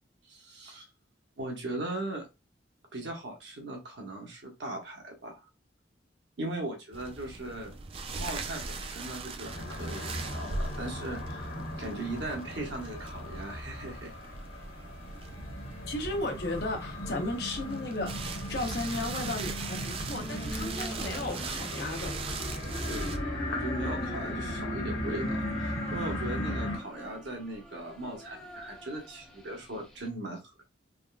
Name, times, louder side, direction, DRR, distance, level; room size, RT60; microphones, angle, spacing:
voice 1, 0.2-0.9 1.4-2.3 2.9-5.4 6.4-7.8 8.1-14.1 22.8-23.2 23.5-30.6, right 2 dB, 80° right, 1.0 m, -39 dB
sound 1, 6.9-23.2, right 3 dB, 30° right, 0.3 m, -40 dB
sound 2, 9.4-26.8, left 1 dB, 90° left, 1.3 m, -37 dB
voice 2, 15.9-22.2, left 2 dB, 60° left, 0.7 m, -35 dB
sound 3, 18.8-30.1, equal, 5° left, 0.6 m, -44 dB
3.6 x 2.3 x 2.2 m
head